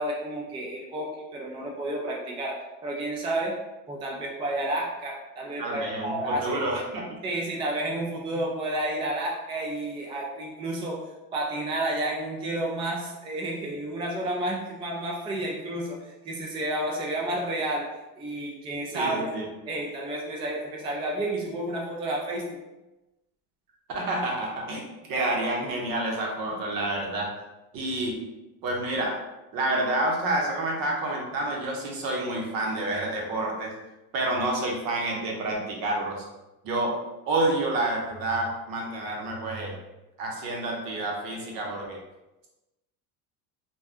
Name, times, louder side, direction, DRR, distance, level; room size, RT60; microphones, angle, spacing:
voice 1, 0.0-3.6 3.9-6.8 7.2-11.0 11.3-19.3 19.7-22.6, right 1 dB, 15° right, -2 dB, 0.3 m, -31 dB
voice 2, 5.6-7.0 18.9-19.5 23.9-24.8 25.1-27.3 27.7-28.2 28.6-29.2 29.5-33.7 34.1-36.2 36.6-37.0 37.3-39.7 40.2-42.0, right 2 dB, 60° right, -1 dB, 0.9 m, -28 dB
2.6 x 2.2 x 3.4 m, 1.0 s
cardioid pair, 125°, 40 cm